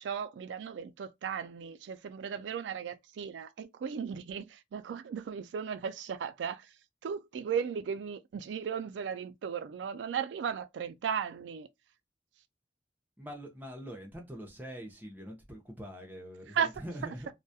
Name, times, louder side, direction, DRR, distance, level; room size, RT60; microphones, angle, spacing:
voice 1, 0.0-6.7 7.0-11.7 16.5-16.7, right 7 dB, 90° right, 0.3 m, -36 dB
voice 2, 13.2-17.3, equal, 10° right, 0.6 m, -44 dB
2.3 x 2.1 x 2.7 m
head